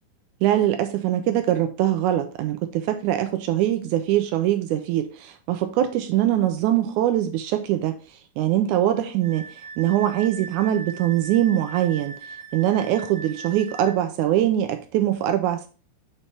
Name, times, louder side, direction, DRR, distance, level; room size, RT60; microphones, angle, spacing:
voice 1, 0.4-8.0 8.4-9.5 9.8-12.1 12.5-15.7, right 12 dB, 80° right, 1.8 m, -22 dB
Wind instrument woodwind instrument, 9.2-14.0, right 5 dB, 60° left, 3.7 m, -39 dB
7.0 x 4.3 x 3.3 m
omnidirectional pair, 3.9 m